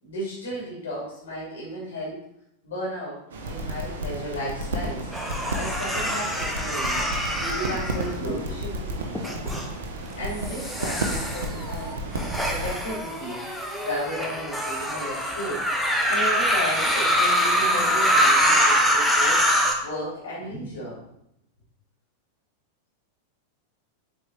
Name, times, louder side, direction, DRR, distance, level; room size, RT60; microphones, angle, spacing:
voice 1, 0.0-2.2 2.6-3.2 3.5-7.0 7.4-9.6 10.2-12.1 12.5-19.4 19.8-21.0, equal, 65° left, -5 dB, 2.9 m, -34 dB
sound 1, 3.3-12.8, right 1 dB, 60° right, 1.1 m, -32 dB
sound 2, 5.1-8.6 9.1-9.6 10.4-19.7, equal, ahead, 1.1 m, -24 dB
7.7 x 4.7 x 4.0 m, 0.78 s
figure-of-eight pair, 90°, 0 cm